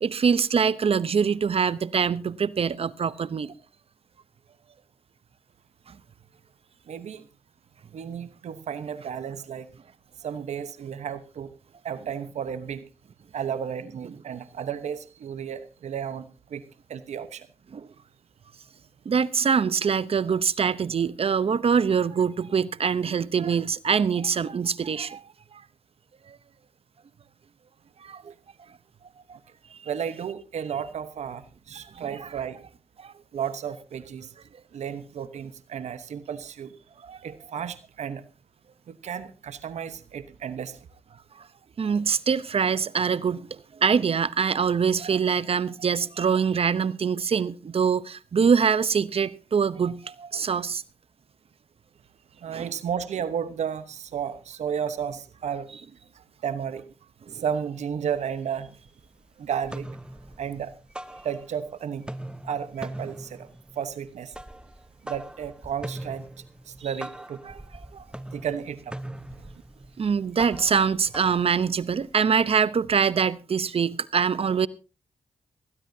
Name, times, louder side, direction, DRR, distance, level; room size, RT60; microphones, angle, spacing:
voice 1, 0.0-3.5 5.9-6.0 17.7-17.9 19.0-25.2 25.5-25.6 26.3-26.4 28.0-28.3 29.3-29.4 29.7-29.8 31.9-32.3 33.0-33.1 37.0-37.2 41.4-41.5 41.8-50.8 52.5-52.7 57.3-57.4 66.8-66.9 67.5-67.6 67.9-68.0 70.0-74.7, right 6 dB, 55° right, 0.8 m, -24 dB
voice 2, 6.9-7.3 7.9-9.7 10.2-11.5 11.8-12.8 13.3-16.6 16.9-17.5 29.8-32.6 33.3-34.3 34.7-36.7 37.2-38.2 38.9-40.8 52.4-55.7 56.4-56.8 57.3-58.8 59.4-59.9 60.4-60.7 61.2-62.1 62.4-63.5 63.7-64.3 65.0-66.3 66.7-67.4 68.3-69.0, right 8 dB, 80° right, 1.1 m, -33 dB
sound 1, 58.2-58.3 58.6-59.2 59.5-61.7 62.0-72.1, right 1 dB, 10° right, 0.8 m, -41 dB
20.0 x 15.0 x 2.8 m
cardioid pair, 55°, 12 cm